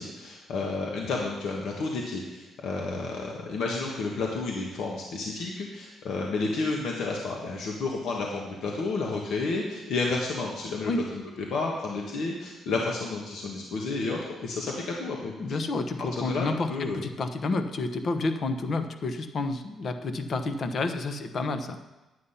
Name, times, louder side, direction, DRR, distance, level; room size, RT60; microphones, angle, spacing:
voice 1, 0.0-11.2 11.5-15.6 16.0-17.0, left 3 dB, 75° left, -1 dB, 1.5 m, -31 dB
voice 2, 15.4-21.8, left 3 dB, 50° left, 8 dB, 1.0 m, -30 dB
10.0 x 8.4 x 5.7 m, 1.1 s
cardioid pair, 90°, 0 cm